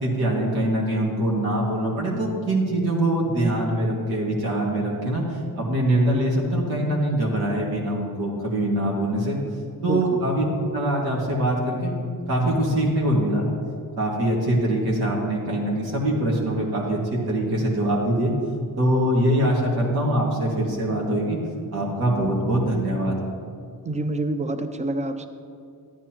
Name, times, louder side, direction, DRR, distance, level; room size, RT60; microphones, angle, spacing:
voice 1, 0.0-9.4 9.8-10.4 10.7-11.9 12.3-13.5 14.0-18.3 18.8-21.4 21.7-23.2, right 1 dB, 80° right, -3 dB, 2.0 m, -23 dB
voice 2, 23.8-25.3, right 2 dB, 20° right, 8 dB, 0.5 m, -27 dB
13.0 x 9.8 x 3.0 m, 2.3 s
wide cardioid pair, 140°, 37 cm